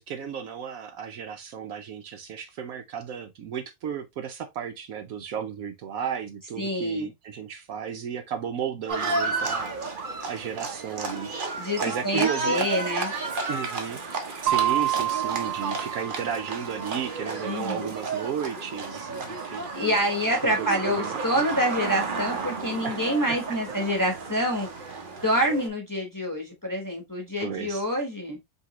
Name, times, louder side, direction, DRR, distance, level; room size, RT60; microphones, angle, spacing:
voice 1, 0.0-9.8 10.3-12.7 13.5-14.0 14.4-19.6 20.4-21.2 22.8-23.0 23.3-23.4 27.4-27.8, right 7 dB, 70° right, 1.0 m, -34 dB
voice 2, 6.6-7.1 11.6-13.1 17.4-17.9 19.7-28.4, equal, 15° left, 1.0 m, -27 dB
Livestock farm animals working animals, 8.9-25.7, right 3 dB, 40° right, 0.8 m, -32 dB
sound 1, 14.5-17.0, right 12 dB, 85° right, 1.2 m, -28 dB
5.3 x 2.8 x 2.9 m
omnidirectional pair, 1.7 m